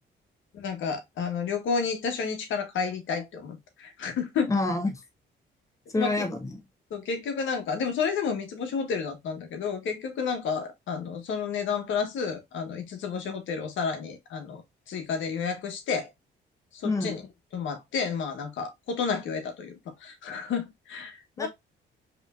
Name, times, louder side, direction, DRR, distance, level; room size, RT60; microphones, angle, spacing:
voice 1, 0.5-4.5 6.0-6.2 6.9-14.6 14.9-16.1 16.7-17.3 17.5-21.5, left 5 dB, 75° left, 1.3 m, -31 dB
voice 2, 4.5-5.0 5.9-6.6 16.8-17.1 21.4-21.5, left 2 dB, 15° left, 1.0 m, -27 dB
4.9 x 3.2 x 2.4 m
cardioid pair, 90°, 20 cm